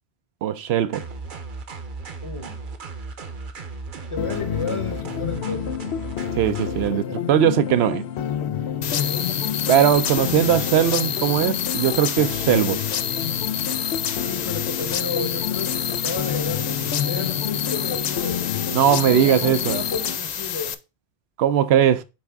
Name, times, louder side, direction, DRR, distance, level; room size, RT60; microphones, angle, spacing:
voice 1, 0.4-1.0 6.4-7.0 7.3-8.0 9.7-12.8 18.7-19.8 21.4-22.0, right 10 dB, 75° right, 0.8 m, -19 dB
sound 1, 0.9-6.9, right 3 dB, 55° right, 1.0 m, -36 dB
voice 2, 2.2-2.6 4.1-5.8 6.9-7.3 8.9-9.3 14.2-18.5 19.0-20.8, left 4 dB, 30° left, 1.0 m, -32 dB
sound 2, 4.2-20.2, left 9 dB, 85° left, 0.9 m, -29 dB
sound 3, 8.8-20.7, left 8 dB, 55° left, 0.5 m, -28 dB
8.5 x 3.5 x 3.5 m
omnidirectional pair, 1.1 m